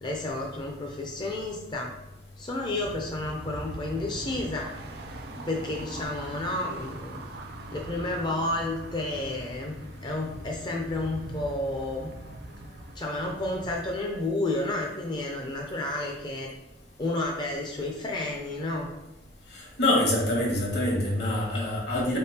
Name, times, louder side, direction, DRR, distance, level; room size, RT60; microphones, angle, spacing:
voice 1, 0.0-1.9 2.4-4.7 5.1-5.2 5.5-7.2 7.7-12.1 13.0-16.5 17.0-18.9, left 2 dB, 25° left, 0 dB, 0.4 m, -31 dB
sound 1, 2.8-14.0, right 2 dB, 60° right, 0.5 m, -42 dB
voice 2, 19.5-22.2, left 1 dB, 70° left, -2 dB, 1.3 m, -25 dB
4.2 x 3.5 x 2.8 m, 0.97 s
head